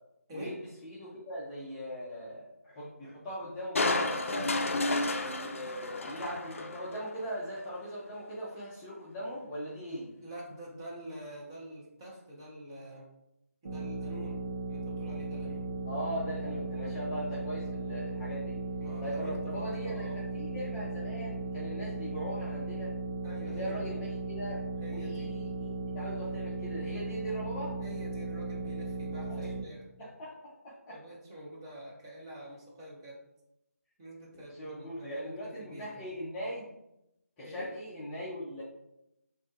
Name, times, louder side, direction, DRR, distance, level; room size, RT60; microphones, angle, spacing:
voice 1, 0.8-4.6 5.2-10.1 15.9-18.6 19.0-22.9 23.4-27.7 29.3-29.5 30.0-31.0 34.5-36.7 37.4-38.6, equal, 10° left, -9 dB, 0.6 m, -40 dB
Crushing, 3.7-7.1 7.6-7.7, left 2 dB, 55° left, 0.5 m, -31 dB
voice 2, 10.2-13.1 13.6-14.4 14.7-15.7 18.8-20.2 23.2-23.9 24.8-25.3 27.8-29.9 30.9-33.2 34.0-36.1 37.4-37.7, right 1 dB, 20° right, -4 dB, 0.8 m, -46 dB
sound 1, 13.6-29.6, right 3 dB, 60° right, 1.2 m, -37 dB
6.0 x 2.7 x 2.4 m, 0.85 s
figure-of-eight pair, 165°, 8 cm